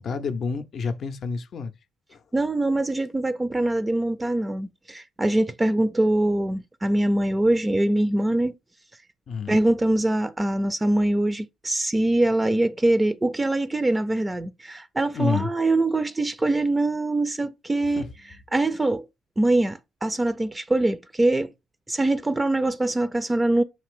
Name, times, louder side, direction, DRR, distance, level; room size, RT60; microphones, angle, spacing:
voice 1, 0.0-1.7 2.1-2.2 9.3-9.6 15.1-15.5 17.9-18.1, left 5 dB, 55° left, 0.5 m, -28 dB
voice 2, 2.3-8.5 9.5-18.0 18.5-19.0 19.4-21.5 21.9-23.6, right 1 dB, 20° right, 0.4 m, -23 dB
5.7 x 2.5 x 3.5 m
hypercardioid pair, 50°, 0 cm